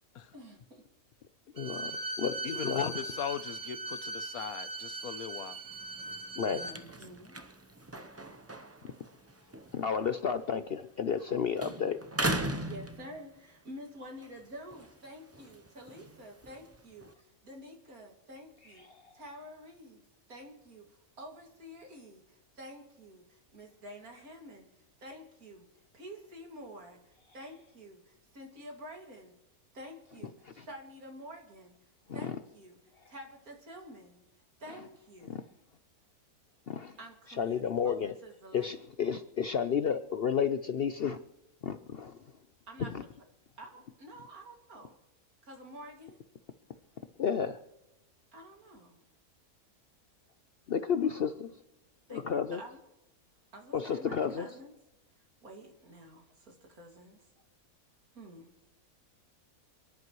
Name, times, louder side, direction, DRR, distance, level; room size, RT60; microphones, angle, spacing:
voice 1, 0.3-0.8 6.5-7.3 12.6-18.9 19.1-25.7 25.9-29.3 29.7-31.8 32.1-32.8 33.1-34.2 34.6-35.5 37.0-38.8 42.7-42.9 43.6-45.0 45.4-46.2 48.3-49.0 52.1-52.2 52.5-52.8 53.5-54.7 55.4-57.2 58.1-58.5, equal, 75° right, 2.9 m, -49 dB
voice 2, 1.5-2.9 6.4-6.7 9.7-12.0 18.9-19.0 32.1-32.4 35.3-35.4 36.7-37.0 37.4-38.1 38.5-41.2 41.6-42.2 42.9-43.0 47.2-47.6 50.7-51.5 52.1-52.6 53.7-54.5, left 7 dB, 55° left, 0.7 m, -32 dB
Bowed string instrument, 1.6-6.8, right 2 dB, 45° right, 1.8 m, -39 dB
voice 3, 2.4-5.6, left 9 dB, 75° left, 1.3 m, -38 dB
sound 1, 5.6-11.3 11.6-13.6 14.1-17.1, right 1 dB, 20° right, 0.4 m, -40 dB
29.0 x 11.0 x 3.1 m
omnidirectional pair, 1.6 m